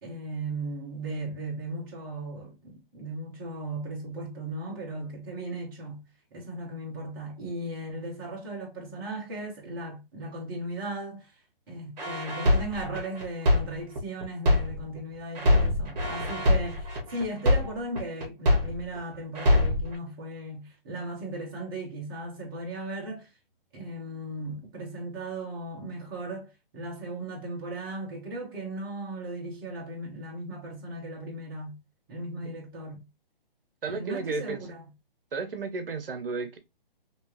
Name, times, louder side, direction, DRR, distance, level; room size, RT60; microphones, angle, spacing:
voice 1, 0.0-11.3 11.7-23.3 23.7-31.8 32.1-33.1 33.9-34.9, right 2 dB, 25° right, 1.1 m, -37 dB
sound 1, 12.0-15.0 15.3-19.0 19.3-19.9, left 1 dB, 45° right, 1.4 m, -24 dB
voice 2, 33.8-34.7 35.3-36.6, right 4 dB, 70° right, 0.9 m, -33 dB
3.4 x 2.9 x 3.0 m
hypercardioid pair, 165°, 29 cm